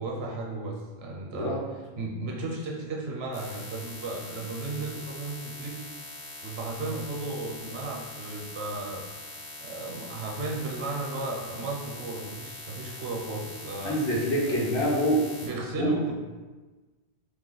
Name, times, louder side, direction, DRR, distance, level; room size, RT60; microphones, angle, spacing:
voice 1, 0.0-1.5 2.0-5.8 6.4-9.1 9.6-14.0 15.4-16.1, right 2 dB, 70° right, -2 dB, 0.9 m, -34 dB
voice 2, 1.3-1.6 13.8-15.2 15.8-15.9, equal, 60° left, -4 dB, 0.9 m, -25 dB
sound 1, 3.3-15.5, left 2 dB, 80° left, 1.1 m, -43 dB
2.7 x 2.1 x 3.8 m, 1.3 s
omnidirectional pair, 1.1 m